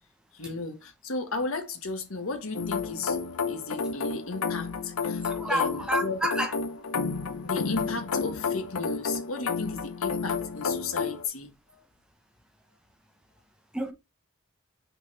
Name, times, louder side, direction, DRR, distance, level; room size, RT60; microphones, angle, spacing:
voice 1, 0.3-3.2 3.5-6.2 7.4-11.8, left 3 dB, 75° left, 1.4 m, -35 dB
sound 1, 2.5-11.2, left 5 dB, 90° left, 0.8 m, -31 dB
voice 2, 5.2-6.5 13.7-13.9, equal, 5° right, 0.9 m, -29 dB
5.7 x 4.0 x 4.1 m
head